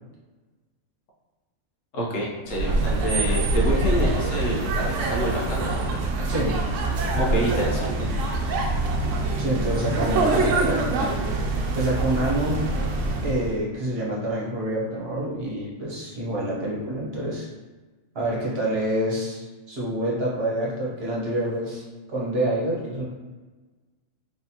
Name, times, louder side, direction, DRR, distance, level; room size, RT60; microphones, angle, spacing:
voice 1, 1.9-5.8 7.1-8.1, equal, 75° left, -4 dB, 1.3 m, -27 dB
sound 1, 2.5-13.6, right 2 dB, 75° right, 0.9 m, -25 dB
voice 2, 6.3-6.6 7.1-7.6 9.4-10.9 11.7-12.6 13.2-17.5 18.1-21.8 22.1-23.0, right 1 dB, 55° right, -5 dB, 1.1 m, -27 dB
3.9 x 3.4 x 2.8 m, 1.3 s
omnidirectional pair, 1.3 m